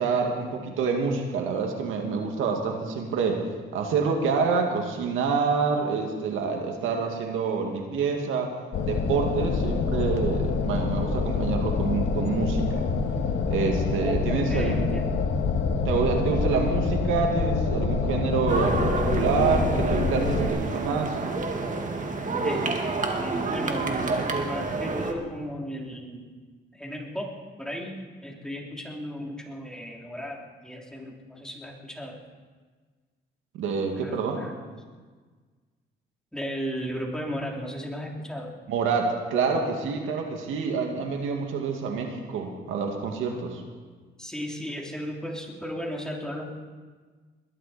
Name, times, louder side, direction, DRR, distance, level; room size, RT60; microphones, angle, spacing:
voice 1, 0.0-3.5 3.7-8.5 8.8-12.8 13.5-14.8 15.8-21.2 33.5-34.4 38.7-43.6, right 5 dB, 85° right, 2 dB, 2.2 m, -27 dB
sound 1, 8.7-20.5, left 4 dB, 70° left, 1.6 m, -26 dB
voice 2, 14.0-15.2 22.4-22.7 23.2-23.8 24.4-26.2 26.7-27.3 27.6-32.2 34.0-34.6 36.3-38.5 44.2-46.6, equal, 5° left, -1 dB, 3.2 m, -35 dB
sound 2, 18.5-25.1, right 3 dB, 40° right, 2.0 m, -28 dB
21.5 x 11.5 x 4.4 m, 1.4 s
cardioid pair, 90°, 20 cm